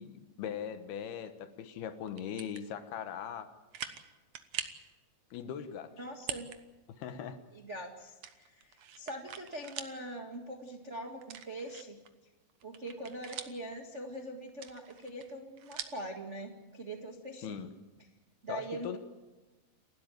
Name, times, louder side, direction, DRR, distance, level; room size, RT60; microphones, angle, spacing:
voice 1, 0.0-3.5 5.3-5.9 7.0-7.4 17.4-17.7 18.5-19.0, left 8 dB, 75° left, 10 dB, 3.1 m, -40 dB
sound 1, 2.1-2.6 3.2-3.3 3.7-4.1 4.3-4.8 6.1-6.6 7.0-7.1 8.2-10.0 10.3-10.4 11.2-12.1 12.5-13.7 14.5-16.0, right 9 dB, 90° right, 1.4 m, -43 dB
voice 2, 6.0-6.5 7.5-12.0 12.6-17.7 18.4-19.0, right 1 dB, 50° right, 2 dB, 0.8 m, -42 dB
29.5 x 12.5 x 9.2 m, 1.1 s
omnidirectional pair, 4.8 m